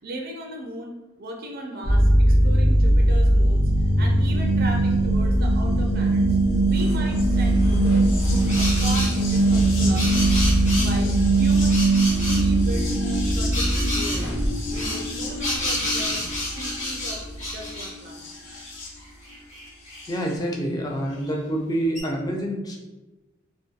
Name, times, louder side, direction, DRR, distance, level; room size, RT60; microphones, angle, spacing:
voice 1, 0.0-3.7 4.0-6.4 6.7-10.5 10.8-16.2 16.5-18.3, right 1 dB, 50° right, 1 dB, 0.4 m, -37 dB
sound 1, 1.8-18.9 20.0-20.1, right 1 dB, 70° left, 0.5 m, -21 dB
sound 2, 6.7-11.8 12.1-13.0 13.5-16.4, equal, 85° left, 0.9 m, -37 dB
sound 3, 8.5-9.1 9.8-11.0 11.7-12.4 13.5-14.2 14.7-17.9 18.5-18.6 18.8-20.0 21.2-21.3 21.9-22.0, left 1 dB, 35° left, 0.9 m, -29 dB
voice 2, 20.1-22.8, right 1 dB, 20° left, 0 dB, 0.3 m, -27 dB
2.6 x 2.2 x 2.4 m, 1.1 s
head